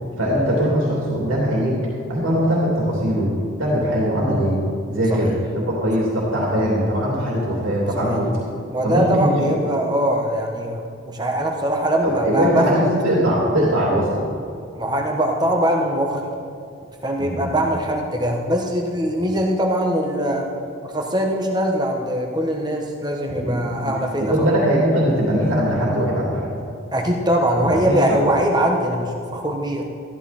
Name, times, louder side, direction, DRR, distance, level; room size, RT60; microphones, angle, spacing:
voice 1, 0.2-1.8 2.1-3.3 3.6-4.5 4.9-8.3 8.8-9.6 12.0-14.2 17.2-17.6 23.4-23.6 23.8-23.9 24.2-26.5 27.8-28.2, equal, 85° right, -5 dB, 3.1 m, -20 dB
voice 2, 8.7-12.8 14.7-16.2 17.0-20.5 20.8-24.5 26.9-29.8, right 1 dB, 20° right, 1 dB, 1.3 m, -22 dB
14.0 x 13.0 x 4.4 m, 2.3 s
head